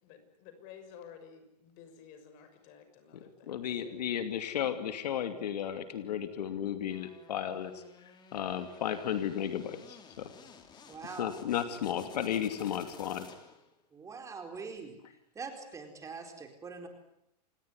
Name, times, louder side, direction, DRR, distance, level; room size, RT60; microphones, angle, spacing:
voice 1, 0.0-4.0, left 7 dB, 40° left, 9 dB, 6.4 m, -53 dB
voice 2, 3.5-7.8 8.3-10.3 11.2-13.3, left 9 dB, 70° left, 9 dB, 2.7 m, -34 dB
sound 1, 6.9-13.8, left 6 dB, 20° left, 3.5 m, -53 dB
voice 3, 10.9-11.3 13.9-14.9 15.3-16.9, right 5 dB, 15° right, 5 dB, 4.4 m, -43 dB
29.0 x 19.5 x 9.8 m, 0.78 s
hypercardioid pair, 140°, 21 cm